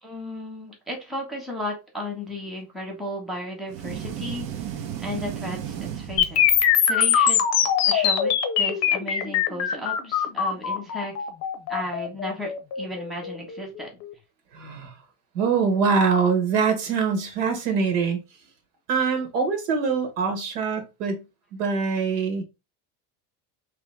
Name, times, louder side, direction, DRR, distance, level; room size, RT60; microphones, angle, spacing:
voice 1, 0.0-11.1 11.7-14.0, left 1 dB, ahead, 1.1 m, -34 dB
sound 1, 3.7-6.9, right 9 dB, 60° right, 0.9 m, -34 dB
sound 2, 6.2-14.1, left 8 dB, 35° left, 0.6 m, -22 dB
voice 2, 14.5-14.9 15.3-18.2 18.9-21.2 21.5-22.4, right 5 dB, 75° right, 1.5 m, -23 dB
3.3 x 3.0 x 3.3 m
supercardioid pair, 135°, 46 cm